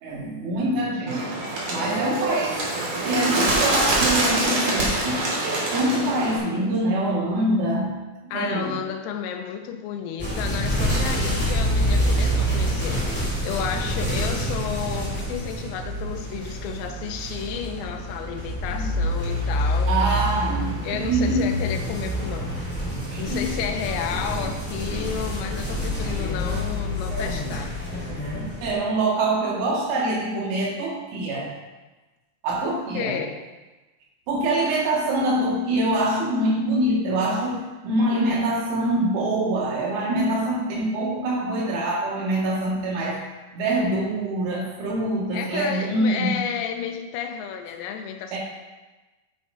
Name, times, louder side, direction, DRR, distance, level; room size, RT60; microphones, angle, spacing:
voice 1, 0.0-1.4 1.7-2.6 3.0-8.0 8.3-8.8 18.7-19.0 19.9-21.5 23.1-23.5 28.4-31.5 32.4-33.2 34.3-43.2 43.5-46.4 48.3-48.4, right 1 dB, 75° right, -4 dB, 4.4 m, -25 dB
Bird, 1.1-6.4, right 2 dB, 50° right, 2.0 m, -24 dB
voice 2, 8.3-20.1 20.8-22.6 23.2-27.8 32.6-33.4 45.3-48.4, left 8 dB, 90° left, 5 dB, 3.4 m, -32 dB
sound 1, 10.2-28.7, equal, 5° left, 0.8 m, -27 dB
10.0 x 9.3 x 2.7 m, 1.2 s
omnidirectional pair, 5.6 m